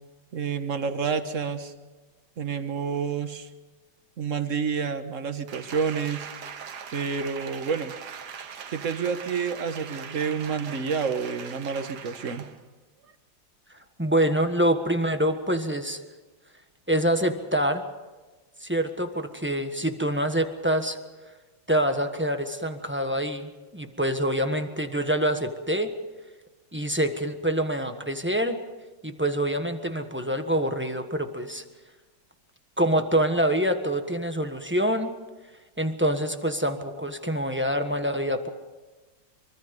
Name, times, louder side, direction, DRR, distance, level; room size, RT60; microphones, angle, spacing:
voice 1, 0.3-1.7 2.4-3.5 4.2-6.3 6.9-7.9 8.7-12.4, right 6 dB, 45° right, 9 dB, 1.4 m, -29 dB
Applause, 5.5-12.6 13.0-13.1, right 7 dB, 60° right, 1.7 m, -41 dB
voice 2, 14.0-16.0 16.9-17.8 18.6-21.0 21.7-25.9 26.7-28.6 29.0-31.6 32.8-35.1 35.8-38.5, right 1 dB, 5° right, 6 dB, 1.1 m, -26 dB
24.5 x 24.0 x 5.4 m, 1.2 s
omnidirectional pair, 2.1 m